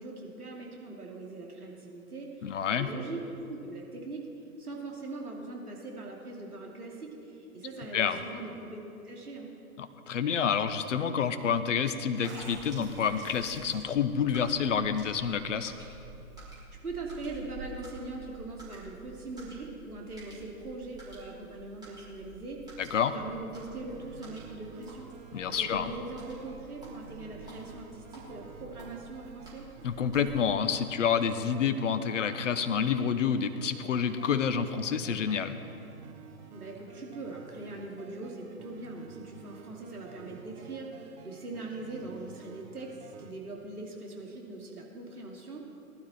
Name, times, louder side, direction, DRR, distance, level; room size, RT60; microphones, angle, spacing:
voice 1, 0.0-3.2 3.5-4.3 4.6-9.5 16.8-29.7 36.5-45.6, right 2 dB, 80° right, -1 dB, 2.7 m, -41 dB
voice 2, 2.4-2.9 7.9-8.2 9.8-15.7 22.8-23.1 25.3-25.9 29.8-35.6, left 7 dB, 55° left, 10 dB, 1.0 m, -28 dB
sound 1, 12.2-30.6, right 3 dB, 10° right, 3.7 m, -49 dB
sound 2, 23.5-43.3, right 6 dB, 30° right, 1.2 m, -50 dB
19.0 x 12.0 x 4.3 m, 2.8 s
figure-of-eight pair, 120°, 45 cm